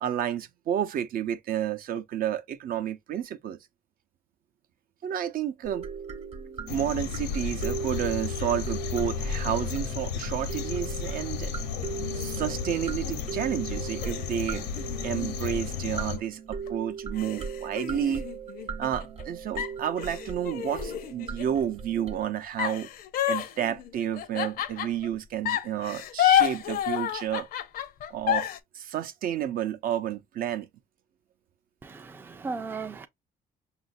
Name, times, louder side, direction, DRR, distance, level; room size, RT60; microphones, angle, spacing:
voice 1, 0.0-3.6 5.0-5.8 6.7-11.5 12.1-14.7 15.0-18.2 18.8-22.9 23.3-27.5 28.1-28.5 28.7-30.7, right 10 dB, 60° right, 0.6 m, -31 dB
sound 1, 5.6-22.2, right 5 dB, 40° right, 1.0 m, -38 dB
sound 2, 6.7-16.2, left 7 dB, 90° left, 0.9 m, -33 dB
sound 3, 12.0-13.3 14.0-16.2 16.7-16.8 17.2-19.2 19.6-21.6 22.6-25.1 25.4-28.6, left 11 dB, 60° left, 0.6 m, -30 dB
voice 2, 31.8-33.1, right 4 dB, 10° right, 0.4 m, -36 dB
5.6 x 2.5 x 2.5 m
cardioid pair, 110°, 17 cm